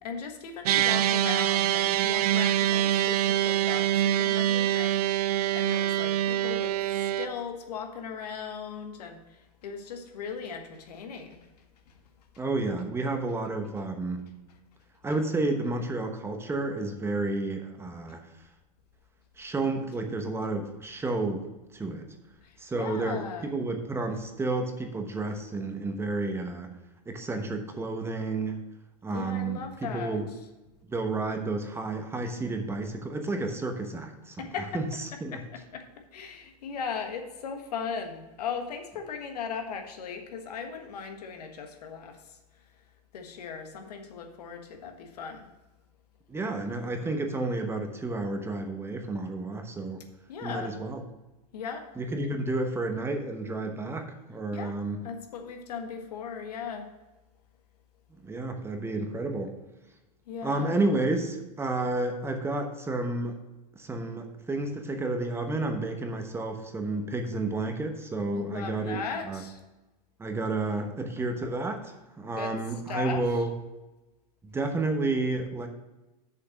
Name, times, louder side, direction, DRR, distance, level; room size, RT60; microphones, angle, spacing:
voice 1, 0.0-11.5 11.9-12.0 22.4-23.5 29.1-30.2 34.4-34.8 35.3-42.4 43.1-45.5 50.3-50.8 51.5-51.9 54.5-54.7 55.0-56.9 60.3-60.7 68.3-69.6 72.3-72.5 72.9-73.3, left 6 dB, 80° left, 5 dB, 1.4 m, -38 dB
sound 1, 0.7-7.3, right 12 dB, 75° right, 0.5 m, -25 dB
voice 2, 12.4-14.3 15.0-18.2 19.4-21.5 21.7-22.1 22.6-26.7 27.1-28.6 29.0-30.3 30.9-34.5 34.7-35.4 46.3-50.0 50.4-51.0 52.0-55.0 58.2-59.5 60.4-63.4 63.7-69.0 69.3-69.4 70.2-73.5 74.5-75.7, right 2 dB, 10° right, 5 dB, 1.0 m, -31 dB
6.9 x 5.6 x 6.4 m, 1.1 s
hypercardioid pair, 125°, 20 cm